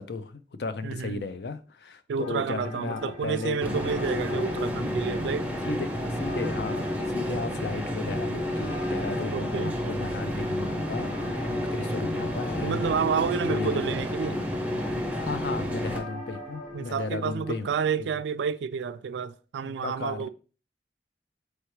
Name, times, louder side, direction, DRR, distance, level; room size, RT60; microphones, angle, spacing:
voice 1, 0.0-3.6 4.3-4.5 5.6-5.9 6.2-12.9 13.5-14.0 15.3-17.7 18.0-18.2 19.6-20.3, left 4 dB, 70° left, 0.4 m, -35 dB
voice 2, 0.8-1.2 2.1-5.5 9.3-9.8 12.6-14.4 16.7-20.3, right 6 dB, 85° right, 0.3 m, -30 dB
sound 1, 2.2-18.2, left 1 dB, 40° left, 1.2 m, -41 dB
sound 2, 3.6-16.0, equal, 10° right, 0.5 m, -30 dB
4.5 x 3.4 x 3.0 m
head